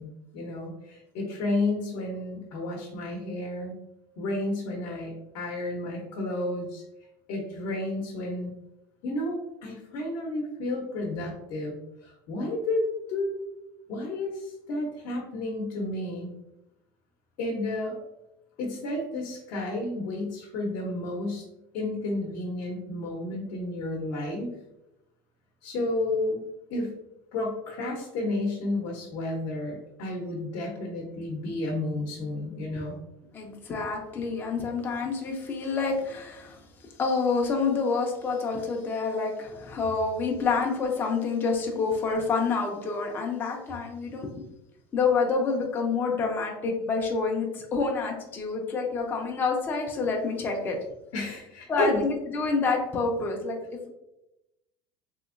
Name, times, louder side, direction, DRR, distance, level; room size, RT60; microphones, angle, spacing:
voice 1, 0.0-3.7 4.2-6.8 7.3-8.5 9.0-13.4 13.9-16.3 17.4-18.0 18.6-21.4 21.7-24.5 25.6-26.4 26.7-26.9 27.3-33.0 51.1-52.0, left 2 dB, 60° left, 0 dB, 0.7 m, -31 dB
voice 2, 33.3-36.6 37.0-44.3 44.9-50.8 51.7-53.6, left 4 dB, 20° left, 1 dB, 0.4 m, -28 dB
3.4 x 2.8 x 2.4 m, 0.91 s
cardioid pair, 155°, 10 cm